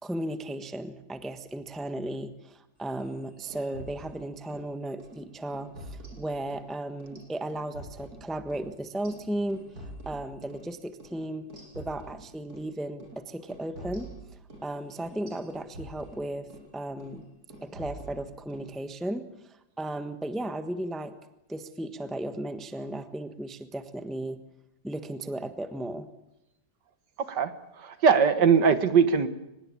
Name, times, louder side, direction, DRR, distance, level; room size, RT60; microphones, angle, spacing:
voice 1, 0.0-9.6 10.0-11.5 11.7-14.1 14.6-16.5 16.7-17.3 17.6-21.2 21.5-24.4 24.8-26.1, right 1 dB, ahead, 10 dB, 1.1 m, -35 dB
sound 1, 2.9-4.7 5.0-5.2 5.5-6.7 7.0-10.7 11.0-11.2 11.5-12.7 13.0-13.2 13.5-16.7 17.0-17.2 17.5-18.7, right 1 dB, 60° right, 8.3 m, -46 dB
voice 2, 27.2-27.5 27.8-29.3, right 6 dB, 75° right, 12 dB, 1.9 m, -21 dB
24.0 x 20.5 x 8.6 m, 0.88 s
omnidirectional pair, 1.9 m